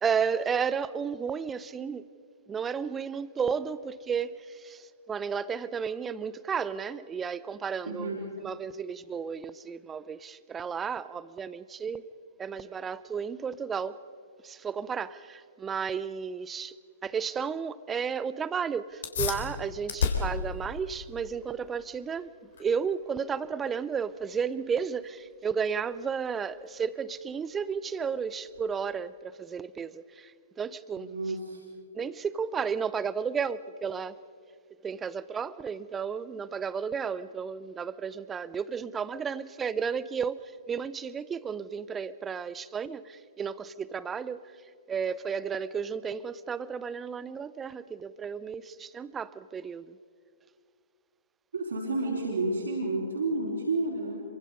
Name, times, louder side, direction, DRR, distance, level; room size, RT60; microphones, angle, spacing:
voice 1, 0.0-2.1 2.5-8.1 8.4-12.0 12.4-14.0 14.4-16.8 17.0-22.3 22.6-31.1 32.0-34.2 34.8-44.5 44.9-50.0, right 6 dB, 15° right, 0.6 m, -33 dB
voice 2, 7.9-8.2 31.0-31.6 51.5-54.2, right 2 dB, 70° right, 4.4 m, -30 dB
sound 1, 18.9-29.0, left 6 dB, 55° left, 3.2 m, -37 dB
26.5 x 24.0 x 5.4 m
figure-of-eight pair, 115°, 0 cm